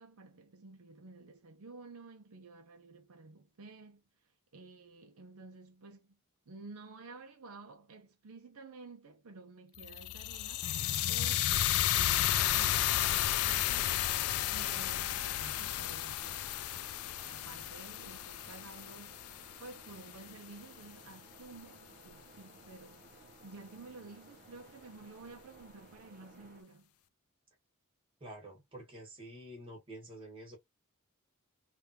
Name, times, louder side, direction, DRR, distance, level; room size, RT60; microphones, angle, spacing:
voice 1, 0.0-6.2 6.5-10.8 11.1-14.1 14.5-16.5 17.2-19.2 19.6-26.9, right 3 dB, 70° right, 0.6 m, -52 dB
sound 1, 9.8-19.9, left 12 dB, 75° left, 0.4 m, -32 dB
sound 2, 11.2-26.6, right 2 dB, 40° right, 0.7 m, -58 dB
voice 2, 28.2-30.6, right 1 dB, 25° right, 1.5 m, -48 dB
3.3 x 2.5 x 2.8 m
head